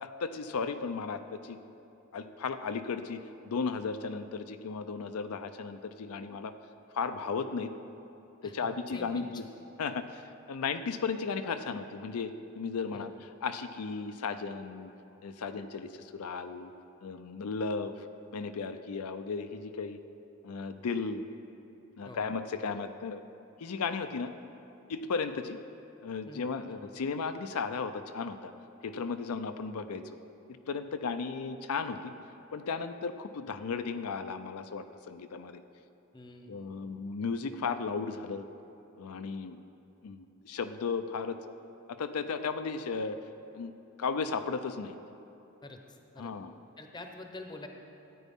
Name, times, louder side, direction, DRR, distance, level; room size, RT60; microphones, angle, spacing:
voice 1, 0.0-1.6 2.1-6.5 6.9-7.7 8.4-9.4 9.8-14.9 15.2-16.7 17.0-18.1 18.3-20.0 20.4-21.2 22.0-23.2 23.6-24.3 24.9-25.6 26.0-28.5 28.8-30.0 30.7-32.1 32.5-35.6 36.5-38.5 39.0-39.6 40.0-41.3 41.9-43.2 43.5-43.7 44.0-45.0 46.2-46.5, left 5 dB, 85° left, 9 dB, 0.5 m, -35 dB
voice 2, 8.4-9.3 12.9-13.1 22.0-22.3 26.2-26.8 36.1-36.7 45.6-46.3 46.8-47.7, left 2 dB, 20° left, 4 dB, 0.7 m, -47 dB
13.5 x 9.2 x 3.6 m, 3.0 s
head